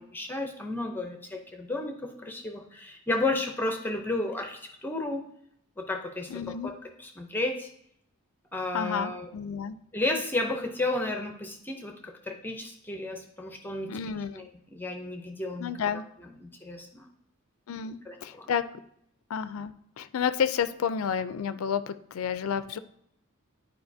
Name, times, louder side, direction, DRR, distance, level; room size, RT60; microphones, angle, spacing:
voice 1, 0.0-5.2 5.8-6.7 7.0-7.7 8.5-9.3 9.9-13.9 14.3-15.7 16.2-17.1 18.1-18.5, left 2 dB, 10° left, 4 dB, 0.6 m, -33 dB
voice 2, 6.3-6.7 8.7-9.8 13.9-14.4 15.6-16.0 17.7-18.7 19.3-22.8, left 7 dB, 85° left, 13 dB, 0.4 m, -30 dB
10.5 x 4.7 x 2.6 m, 0.72 s
head